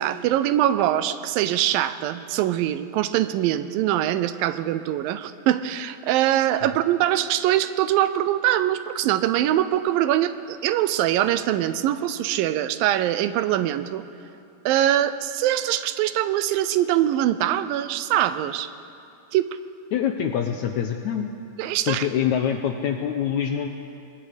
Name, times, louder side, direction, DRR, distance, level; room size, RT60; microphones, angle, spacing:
voice 1, 0.0-14.0 14.7-18.7 19.3-19.6 21.6-22.1, right 12 dB, 80° right, 13 dB, 2.3 m, -23 dB
voice 2, 19.9-21.3 21.9-23.7, left 9 dB, 75° left, 5 dB, 1.7 m, -25 dB
26.0 x 20.5 x 5.1 m, 2.6 s
omnidirectional pair, 4.2 m